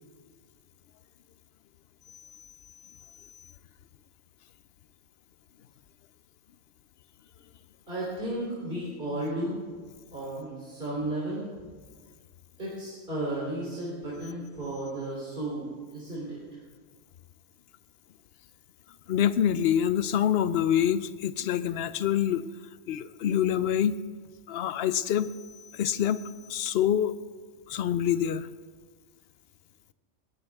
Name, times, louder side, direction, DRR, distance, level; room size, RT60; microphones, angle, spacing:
voice 1, 7.9-9.6 10.1-11.5 12.6-16.4, right 1 dB, 40° right, -6 dB, 3.6 m, -34 dB
voice 2, 19.1-22.5 22.9-24.0 24.5-25.3 25.7-26.2 26.5-27.1 27.7-28.5, left 10 dB, 60° left, 14 dB, 0.8 m, -26 dB
20.0 x 16.5 x 3.6 m, 1.5 s
omnidirectional pair, 1.3 m